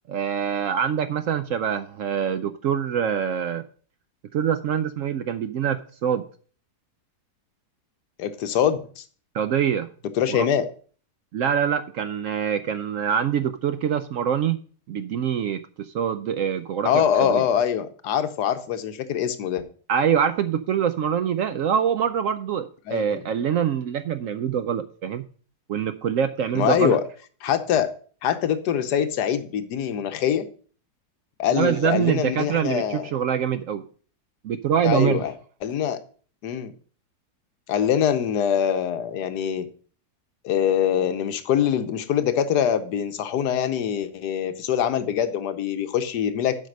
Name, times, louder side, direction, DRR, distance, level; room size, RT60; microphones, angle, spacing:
voice 1, 0.1-3.6 4.3-6.2 9.3-9.9 10.3-10.5 11.3-14.6 14.9-17.4 19.9-25.2 25.7-27.0 31.5-33.8 34.4-35.2, right 8 dB, 70° right, 10 dB, 0.8 m, -24 dB
voice 2, 8.2-9.0 10.2-10.7 16.8-19.6 22.9-23.2 26.5-27.0 27.4-27.9 28.2-30.5 31.4-33.1 34.8-35.3 35.6-36.0 36.4-36.7 37.7-39.7 40.4-46.6, left 9 dB, 80° left, 10 dB, 1.4 m, -24 dB
7.5 x 5.4 x 6.3 m, 0.43 s
omnidirectional pair, 1.7 m